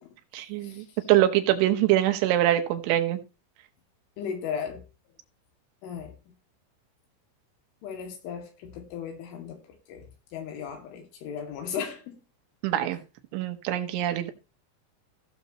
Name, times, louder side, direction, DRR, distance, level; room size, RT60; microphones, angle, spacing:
voice 1, 0.3-3.2 12.6-13.0 13.3-14.3, right 13 dB, 85° right, 3.6 m, -24 dB
voice 2, 4.2-4.8 5.8-6.1 7.8-9.6 9.9-12.2, left 7 dB, 85° left, 4.9 m, -36 dB
16.0 x 6.9 x 3.0 m
omnidirectional pair, 5.4 m